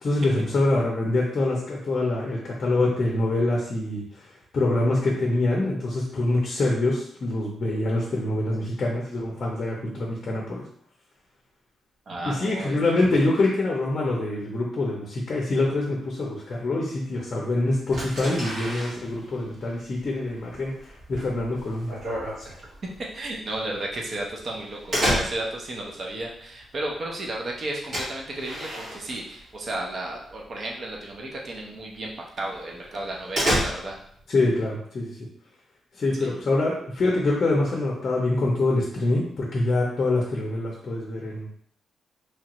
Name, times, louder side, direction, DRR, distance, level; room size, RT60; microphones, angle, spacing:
voice 1, 0.0-4.0 4.5-10.7 12.2-20.7 21.1-22.0 34.3-35.1 36.0-41.5, left 2 dB, 40° left, -2 dB, 0.6 m, -25 dB
voice 2, 12.1-12.8 22.5-22.6 23.0-32.1 32.4-34.0 36.2-36.4, right 1 dB, 40° right, -1 dB, 0.6 m, -33 dB
sound 1, 17.9-29.8 30.1-30.6 30.9-31.1 31.5-31.6 32.1-32.2 32.5-34.2, equal, 55° right, 1.4 m, -31 dB
3.1 x 2.4 x 2.9 m, 0.65 s
cardioid pair, 145°, 0 cm